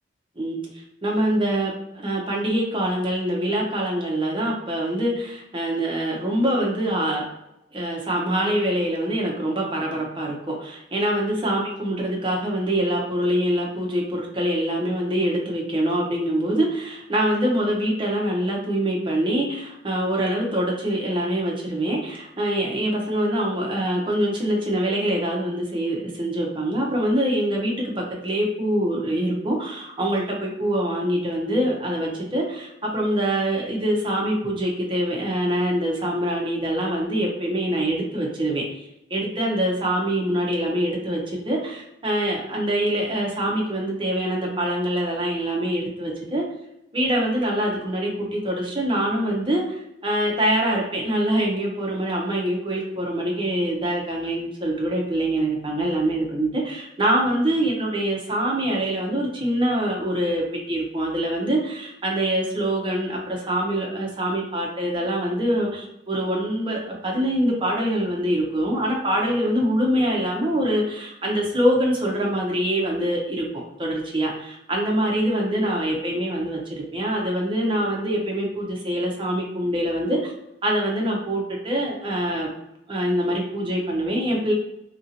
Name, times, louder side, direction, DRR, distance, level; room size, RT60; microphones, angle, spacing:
voice 1, 1.0-7.3 7.7-38.6 39.1-46.4 46.9-80.3 80.6-82.5 82.9-84.5, right 1 dB, 30° right, -2 dB, 0.7 m, -24 dB
2.9 x 2.7 x 2.7 m, 0.86 s
head